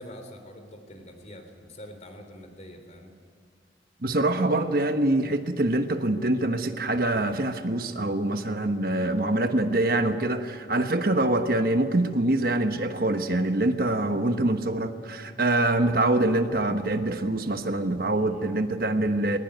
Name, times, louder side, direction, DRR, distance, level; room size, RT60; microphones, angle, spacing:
voice 1, 0.0-3.1 8.3-8.7 18.1-18.5, equal, 40° left, 6 dB, 3.6 m, -45 dB
voice 2, 4.0-19.4, right 2 dB, 55° right, 7 dB, 1.2 m, -25 dB
21.0 x 19.5 x 9.4 m, 2.2 s
head